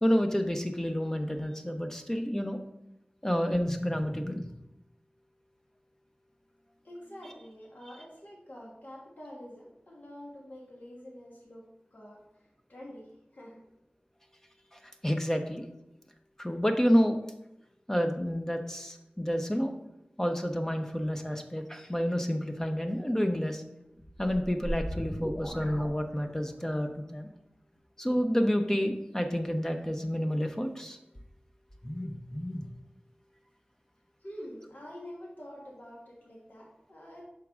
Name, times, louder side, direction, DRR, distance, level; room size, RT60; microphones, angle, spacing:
voice 1, 0.0-2.6 3.2-4.5 14.7-15.6 16.4-17.2 17.9-19.7 20.2-23.6 24.2-27.3 28.0-31.0 31.8-32.7, equal, 15° left, 5 dB, 0.7 m, -29 dB
voice 2, 6.8-11.6 11.9-12.2 12.7-13.1 13.3-13.6 34.2-37.2, equal, 60° left, -3 dB, 1.4 m, -46 dB
sound 1, 24.0-26.7, equal, 30° left, 1.8 m, -38 dB
6.1 x 4.6 x 3.6 m, 0.85 s
wide cardioid pair, 45°, 3 cm